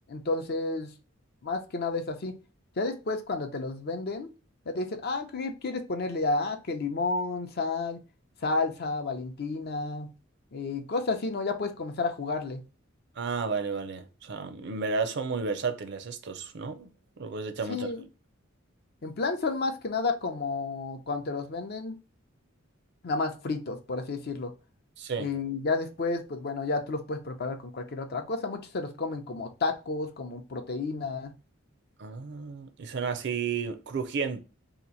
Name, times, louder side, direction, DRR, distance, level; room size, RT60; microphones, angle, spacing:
voice 1, 0.1-0.9 1.4-2.4 2.8-4.3 4.7-8.0 8.4-10.1 10.5-12.6 17.7-18.1 19.0-21.9 23.0-24.5 25.2-31.3, left 3 dB, 50° left, 0.6 m, -31 dB
voice 2, 13.2-16.9 17.2-17.9 25.0-25.3 32.0-34.4, right 5 dB, 55° right, 0.5 m, -32 dB
2.9 x 2.4 x 3.9 m
head